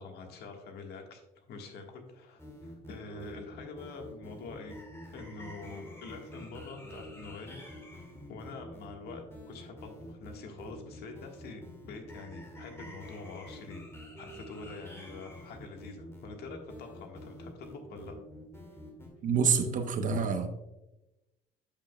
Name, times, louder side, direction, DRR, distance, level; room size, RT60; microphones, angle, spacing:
voice 1, 0.0-4.8 5.1-7.6 8.3-13.8 14.2-18.2, left 4 dB, 70° left, 3 dB, 1.5 m, -45 dB
sound 1, 2.4-19.1, equal, 15° left, 2.2 m, -47 dB
voice 2, 19.2-20.5, right 6 dB, 50° right, 8 dB, 0.9 m, -27 dB
8.6 x 7.9 x 2.2 m, 0.97 s
cardioid pair, 110°, 17 cm